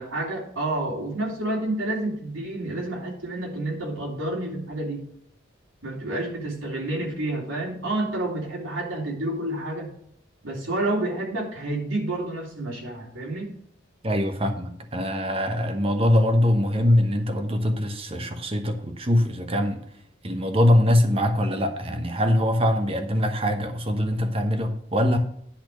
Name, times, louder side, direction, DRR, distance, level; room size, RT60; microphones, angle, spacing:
voice 1, 0.0-5.0 5.8-9.9 10.4-13.5, right 1 dB, 85° right, -2 dB, 3.2 m, -29 dB
voice 2, 14.0-19.8 20.2-25.2, left 1 dB, 30° right, 6 dB, 1.0 m, -23 dB
10.5 x 4.4 x 6.3 m, 0.70 s
head